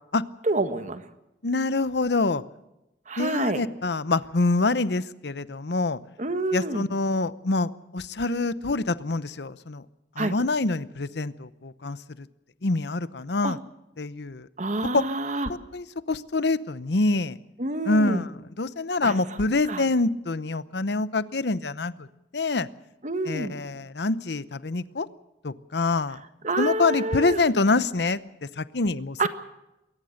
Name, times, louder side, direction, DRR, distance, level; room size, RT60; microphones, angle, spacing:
voice 1, 0.4-1.0 3.1-3.6 6.2-6.9 10.2-10.4 13.4-13.6 14.6-15.5 17.6-18.2 19.0-19.4 19.7-19.8 23.0-23.5 26.4-27.4 29.2-29.3, right 2 dB, 45° right, 9 dB, 1.6 m, -27 dB
voice 2, 1.4-2.4 3.2-6.0 6.5-9.8 10.2-12.3 12.6-13.6 14.0-14.5 14.9-15.0 15.5-17.4 17.9-18.3 18.6-22.1 22.3-22.7 23.3-25.1 25.4-26.2 26.6-28.2 28.6-29.3, left 3 dB, 70° left, 15 dB, 0.8 m, -26 dB
22.0 x 18.5 x 6.5 m, 0.93 s
head